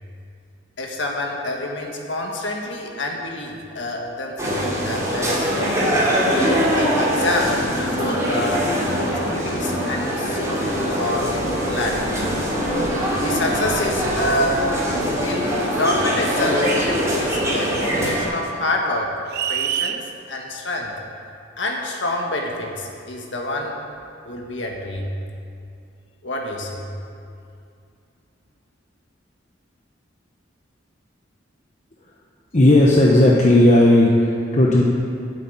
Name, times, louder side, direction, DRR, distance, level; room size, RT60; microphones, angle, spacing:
voice 1, 0.8-5.8 6.3-10.7 11.0-11.3 11.7-12.1 13.2-14.7 15.2-19.2 19.5-20.0 20.3-20.9 21.6-23.8 24.2-25.1 26.2-26.9, left 1 dB, 70° left, 0 dB, 1.7 m, -27 dB
sound 1, 4.4-18.2, equal, 15° right, 3.1 m, -22 dB
sound 2, 19.3-20.0, right 9 dB, 55° right, 0.5 m, -24 dB
voice 2, 32.5-34.8, left 1 dB, 40° left, -2 dB, 1.0 m, -14 dB
9.8 x 8.5 x 8.5 m, 2.5 s
head